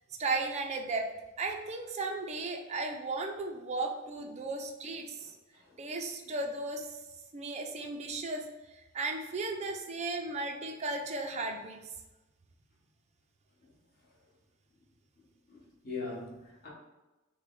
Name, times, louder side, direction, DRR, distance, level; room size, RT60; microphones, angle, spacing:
voice 1, 0.2-1.0 1.4-5.3 5.8-7.0 7.3-8.4 8.7-11.8, right 3 dB, 30° right, 3 dB, 0.5 m, -35 dB
voice 2, 15.5-16.7, left 3 dB, 45° left, -5 dB, 1.3 m, -41 dB
6.3 x 2.2 x 3.7 m, 1.1 s
head